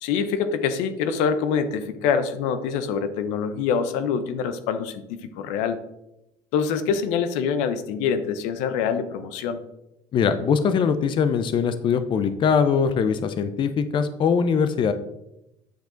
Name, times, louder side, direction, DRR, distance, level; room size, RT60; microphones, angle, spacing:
voice 1, 0.0-5.8 6.5-9.6, left 6 dB, 85° left, 10 dB, 0.8 m, -25 dB
voice 2, 10.1-14.9, left 6 dB, 45° left, 11 dB, 0.6 m, -22 dB
9.3 x 4.8 x 3.9 m, 0.86 s
cardioid pair, 110°, 12 cm